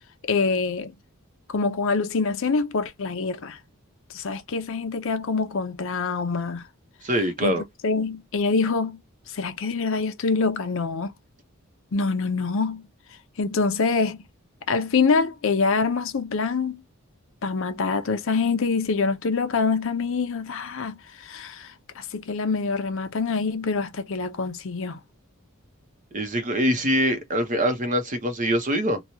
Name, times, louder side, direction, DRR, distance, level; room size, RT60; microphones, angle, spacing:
voice 1, 0.3-0.9 1.5-3.6 4.1-6.6 7.4-9.0 9.3-11.1 11.9-12.8 13.4-14.2 14.7-16.8 17.4-25.0, left 4 dB, 65° left, 0.6 m, -25 dB
voice 2, 7.0-7.6 26.1-29.0, equal, 40° right, 0.8 m, -24 dB
3.0 x 2.3 x 2.7 m
head